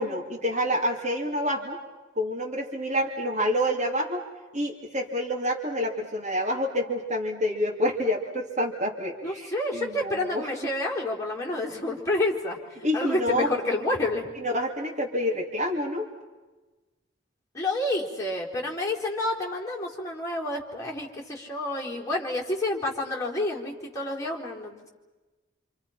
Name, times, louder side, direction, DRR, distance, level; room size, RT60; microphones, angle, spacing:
voice 1, 0.0-1.8 2.1-4.2 4.5-10.5 12.8-13.5 14.4-16.1, equal, 35° right, -1 dB, 3.1 m, -28 dB
voice 2, 9.2-12.6 12.9-14.3 17.5-24.9, left 2 dB, 15° left, -3 dB, 4.1 m, -29 dB
28.0 x 27.5 x 5.8 m, 1.2 s
head